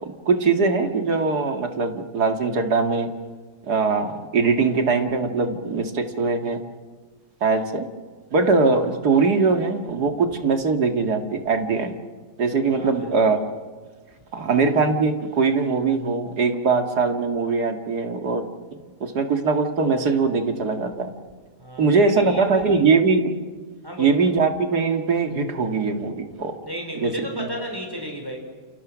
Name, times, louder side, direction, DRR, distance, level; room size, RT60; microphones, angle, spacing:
voice 1, 0.0-3.1 3.7-6.6 7.4-7.9 8.3-11.9 12.4-13.4 14.3-18.5 19.0-21.1 21.8-23.3 24.0-26.5 26.9-27.5, right 4 dB, 70° right, 5 dB, 2.6 m, -21 dB
voice 2, 12.7-13.1 21.6-22.9 23.8-24.3 26.6-28.4, equal, 15° right, 2 dB, 5.0 m, -33 dB
29.0 x 28.0 x 6.3 m, 1.5 s
omnidirectional pair, 1.8 m